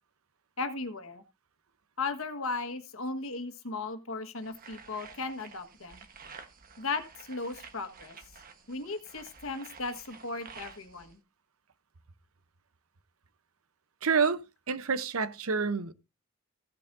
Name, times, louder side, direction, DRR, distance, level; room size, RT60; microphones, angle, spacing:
voice 1, 0.6-1.2 2.0-6.1 6.8-8.2 8.7-11.2, left 3 dB, 75° left, 1.5 m, -36 dB
sound 1, 4.4-11.1, right 5 dB, 40° right, 1.2 m, -51 dB
voice 2, 14.0-14.4 14.7-15.9, right 5 dB, 85° right, 0.8 m, -28 dB
15.5 x 9.0 x 2.6 m
head